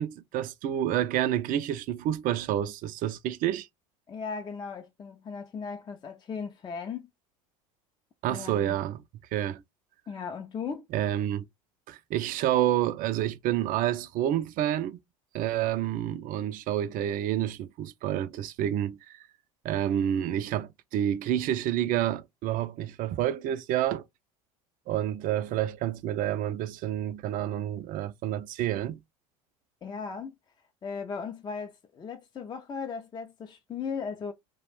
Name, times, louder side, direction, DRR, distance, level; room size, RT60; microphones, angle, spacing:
voice 1, 0.0-3.7 8.2-9.0 9.3-9.6 10.9-11.4 11.9-15.0 15.3-19.2 19.6-24.0 24.9-29.0, right 11 dB, 50° right, 0.4 m, -29 dB
voice 2, 4.1-7.1 8.3-8.8 10.1-10.9 29.8-30.3 30.8-34.3, left 5 dB, 25° left, 0.5 m, -37 dB
2.4 x 2.1 x 3.2 m
hypercardioid pair, 80°, 19 cm